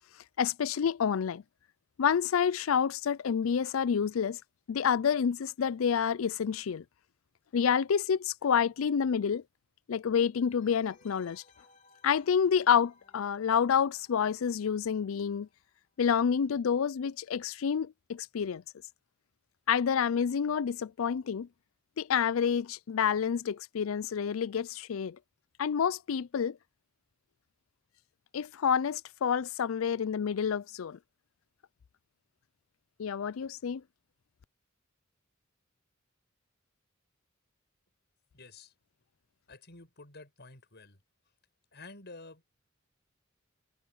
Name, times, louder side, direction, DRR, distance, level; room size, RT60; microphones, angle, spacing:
voice 1, 0.4-1.4 2.0-4.4 4.7-6.8 7.5-9.4 9.9-11.4 12.0-15.5 16.0-18.6 19.7-21.5 22.0-25.2 25.6-26.6 28.3-31.0 33.0-33.8, left 7 dB, 80° left, 0.4 m, -28 dB
sound 1, 10.4-15.9 16.1-16.2, left 4 dB, 35° left, 3.9 m, -64 dB
voice 2, 38.3-38.7 39.5-41.0 41.7-42.4, left 3 dB, 55° left, 6.1 m, -50 dB
head